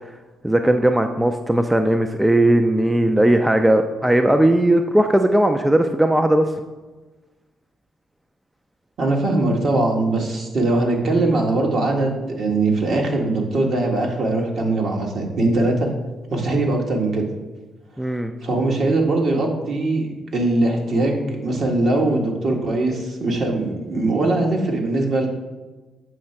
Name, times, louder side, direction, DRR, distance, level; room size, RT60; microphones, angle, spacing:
voice 1, 0.4-6.5 18.0-18.3, right 1 dB, 10° right, 6 dB, 0.4 m, -17 dB
voice 2, 9.0-15.9 16.3-17.2 18.4-25.3, right 2 dB, 60° right, 1 dB, 1.5 m, -21 dB
7.5 x 3.2 x 5.8 m, 1.2 s
cardioid pair, 90°, 0 cm